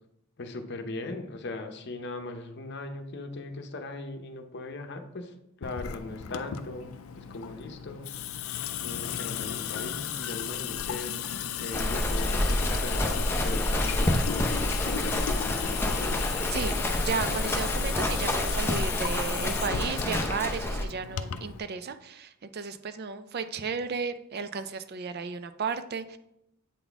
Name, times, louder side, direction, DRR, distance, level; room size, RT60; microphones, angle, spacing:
voice 1, 0.4-8.1 8.8-11.3 11.6-16.2, left 2 dB, 55° left, 6 dB, 0.7 m, -39 dB
Water tap faucet / Sink (filling or washing) / Drip, 5.6-21.6, left 9 dB, 85° left, 0.4 m, -35 dB
Livestock farm animals working animals, 11.7-20.8, left 1 dB, 10° left, 0.6 m, -28 dB
voice 2, 16.5-26.2, right 5 dB, 50° right, 11 dB, 0.5 m, -34 dB
8.3 x 4.1 x 3.5 m, 0.78 s
head